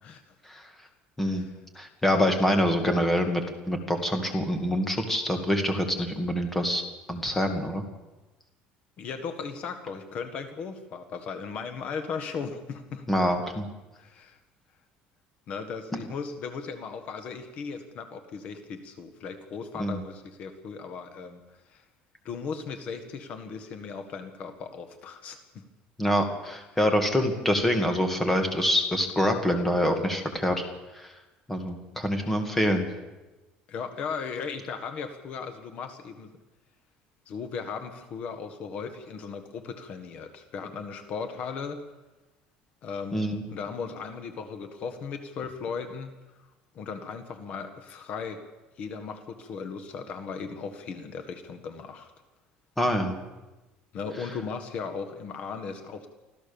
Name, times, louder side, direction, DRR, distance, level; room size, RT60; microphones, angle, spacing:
voice 1, 0.0-0.3 1.2-1.5 9.0-13.1 13.9-14.4 15.5-21.4 21.7-21.8 22.3-25.7 33.7-36.3 37.3-41.8 42.8-43.2 43.5-46.5 46.8-48.4 48.8-52.1 53.9-56.1, left 5 dB, 40° left, 8 dB, 1.7 m, -37 dB
voice 2, 1.8-6.8 7.1-7.8 13.1-13.7 15.9-16.0 19.8-20.0 26.0-30.7 30.9-31.1 31.5-32.9 43.1-43.4 52.8-53.1 54.2-54.3, equal, 10° left, 5 dB, 2.2 m, -26 dB
25.0 x 15.0 x 7.1 m, 1.1 s
cardioid pair, 165°, 3 cm